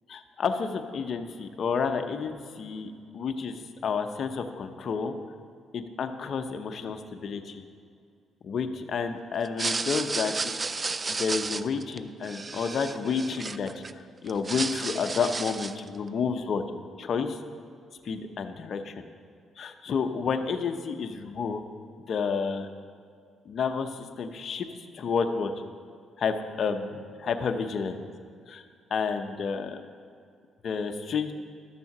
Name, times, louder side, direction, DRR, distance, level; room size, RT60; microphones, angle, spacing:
voice 1, 0.1-5.1 5.7-7.6 8.4-10.5 11.1-16.6 17.0-17.4 18.0-18.9 19.6-21.6 22.1-22.7 23.5-24.7 24.9-25.5 26.2-28.0 28.5-28.6 28.9-29.8 30.6-31.3, left 5 dB, 55° left, 6 dB, 0.8 m, -30 dB
sound 1, 9.5-13.9 14.3-15.9, right 3 dB, 30° right, 0.4 m, -32 dB
13.0 x 6.9 x 6.0 m, 2.3 s
cardioid pair, 90°, 0 cm